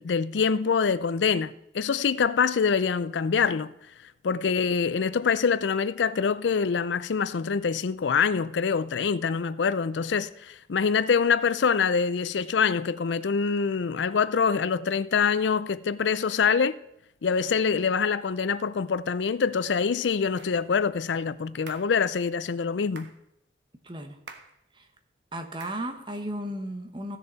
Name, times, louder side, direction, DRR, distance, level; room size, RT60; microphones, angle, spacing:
voice 1, 0.0-3.7 4.2-16.8 17.2-23.1, left 6 dB, 90° left, 0.5 m, -25 dB
sound 1, 20.4-20.6 21.7-22.0 23.0-23.2 24.3-24.6 25.6-25.9, right 5 dB, 75° right, 1.1 m, -46 dB
voice 2, 23.8-24.2 25.3-27.2, right 1 dB, 25° right, 1.2 m, -34 dB
15.0 x 6.8 x 4.1 m
head